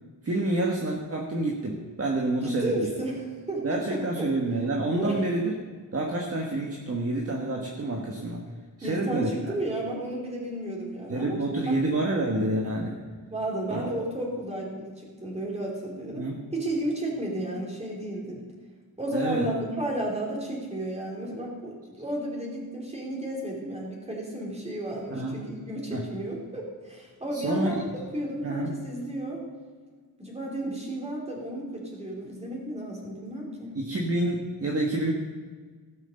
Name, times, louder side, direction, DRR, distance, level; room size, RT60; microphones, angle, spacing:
voice 1, 0.2-2.9 3.6-5.5 5.9-8.4 8.8-9.5 11.1-12.9 13.7-13.9 16.1-16.4 19.1-19.5 25.1-25.4 25.9-26.0 27.3-27.8 28.4-28.7 33.7-35.1, right 2 dB, 35° right, 0 dB, 1.5 m, -28 dB
voice 2, 2.4-4.3 4.9-5.2 8.8-11.4 11.7-11.8 13.3-18.4 19.0-27.8 28.1-29.4 30.2-33.8, right 1 dB, 15° right, -2 dB, 3.4 m, -33 dB
16.5 x 6.4 x 6.5 m, 1.5 s
wide cardioid pair, 145°, 40 cm